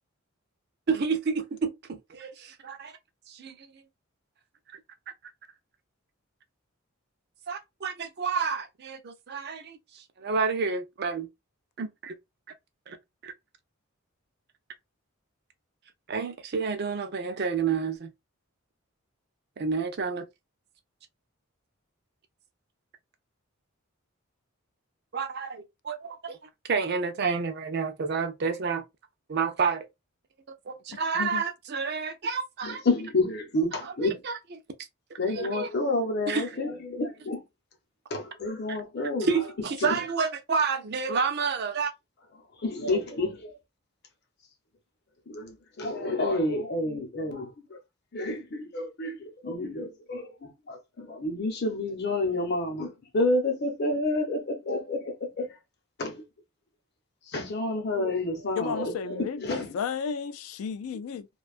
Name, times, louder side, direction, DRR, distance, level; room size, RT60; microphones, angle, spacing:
voice 1, 0.9-2.3 2.6-3.0 3.3-3.7 4.7-4.8 7.5-11.3 11.8-12.1 12.9-13.0 13.2-13.3 16.1-18.1 19.6-20.3 25.1-26.4 26.7-28.8 29.3-29.9 30.7-32.8 33.8-34.4 35.3-35.7 36.3-36.5 38.7-38.8 39.2-41.9, right 5 dB, 50° right, 0.4 m, -29 dB
voice 2, 32.6-34.2 35.2-37.4 38.1-39.3 39.8-40.0 42.6-43.6 45.3-47.8 48.1-55.6 56.0-56.2 57.3-59.8, left 2 dB, 50° left, 0.7 m, -29 dB
voice 3, 58.6-61.3, left 6 dB, 80° left, 0.3 m, -33 dB
2.6 x 2.3 x 2.4 m
head